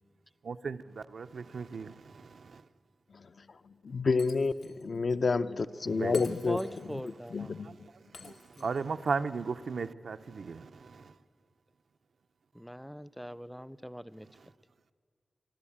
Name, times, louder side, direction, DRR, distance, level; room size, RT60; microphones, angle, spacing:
voice 1, 0.4-2.6 5.9-6.2 7.6-7.8 8.0-11.1, right 5 dB, 85° right, 9 dB, 0.6 m, -36 dB
voice 2, 3.5-7.9 8.2-8.3, left 4 dB, 65° left, 10 dB, 0.6 m, -30 dB
Shatter, 4.2-4.8 5.1-5.2 6.1-7.1 8.1-9.1, left 4 dB, 90° left, 1.4 m, -51 dB
voice 3, 6.3-7.5 8.6-8.7 12.6-14.3, equal, ahead, 17 dB, 0.5 m, -41 dB
25.0 x 13.5 x 8.6 m, 2.2 s
wide cardioid pair, 95°, 0 cm